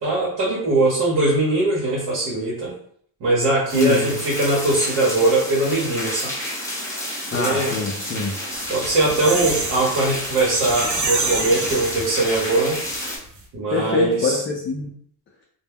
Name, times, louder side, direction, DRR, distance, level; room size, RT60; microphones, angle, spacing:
voice 1, 0.0-2.7 3.2-6.3 7.3-7.8 8.7-12.8 13.5-14.4, right 2 dB, 70° right, -6 dB, 0.9 m, -21 dB
voice 2, 3.7-4.2 7.3-8.4 13.7-14.9, left 4 dB, 30° left, -1 dB, 0.4 m, -25 dB
sound 1, 3.7-13.2, left 1 dB, 5° left, 1.0 m, -30 dB
sound 2, 8.6-12.5 12.9-13.0 13.2-13.4, right 3 dB, 45° right, 0.7 m, -27 dB
2.2 x 2.0 x 3.4 m, 0.62 s
cardioid pair, 95°, 43 cm